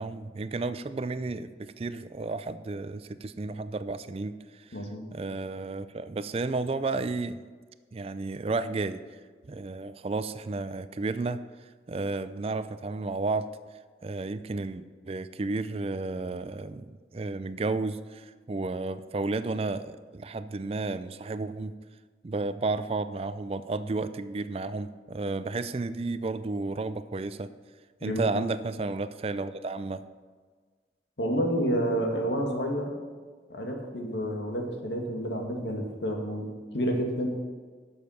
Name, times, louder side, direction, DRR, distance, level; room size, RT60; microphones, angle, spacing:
voice 1, 0.0-4.8 5.1-7.4 7.9-9.0 9.4-11.4 11.9-13.5 14.0-21.7 22.2-27.5 28.0-30.0, right 3 dB, 35° right, 13 dB, 0.4 m, -32 dB
voice 2, 4.7-5.1 28.0-28.3 31.2-32.9 33.5-36.4 36.7-37.4, equal, 80° left, 1 dB, 2.0 m, -29 dB
11.0 x 7.2 x 5.8 m, 1.5 s
head